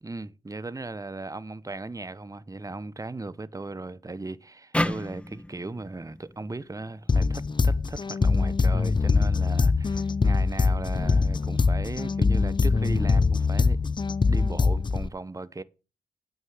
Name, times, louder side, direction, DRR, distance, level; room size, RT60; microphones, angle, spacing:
voice 1, 0.0-13.9 14.3-15.6, right 3 dB, 20° right, 0.9 m, -37 dB
sound 1, 4.7-8.0, left 1 dB, 5° left, 0.9 m, -33 dB
sound 2, 7.1-15.1, left 4 dB, 30° left, 0.5 m, -23 dB
8.9 x 6.7 x 6.4 m
supercardioid pair, 45°, 16 cm